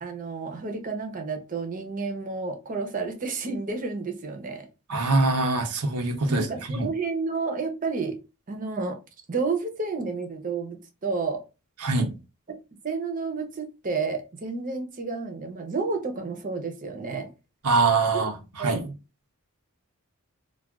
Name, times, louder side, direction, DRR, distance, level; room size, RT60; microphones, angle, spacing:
voice 1, 0.0-4.7 6.3-8.2 8.5-9.0 9.3-11.4 12.8-17.3 18.1-18.3 18.6-19.0, right 4 dB, 35° right, 0.6 m, -31 dB
voice 2, 4.9-6.5 6.7-6.9 11.8-12.1 17.6-18.3 18.6-18.8, right 3 dB, 85° right, 0.7 m, -23 dB
2.4 x 2.3 x 3.4 m
head